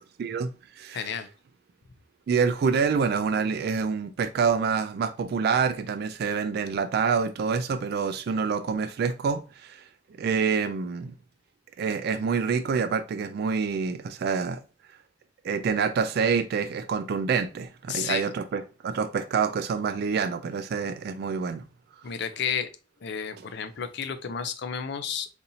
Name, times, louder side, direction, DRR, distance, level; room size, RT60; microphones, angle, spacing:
voice 1, 0.2-0.5 0.8-1.0 2.3-9.8 10.2-11.1 11.8-14.6 15.4-21.6, right 5 dB, 55° right, 0.3 m, -27 dB
voice 2, 0.9-1.3 17.9-18.3 22.0-22.7 23.0-25.3, left 7 dB, 60° left, 0.4 m, -31 dB
4.1 x 2.6 x 2.7 m
head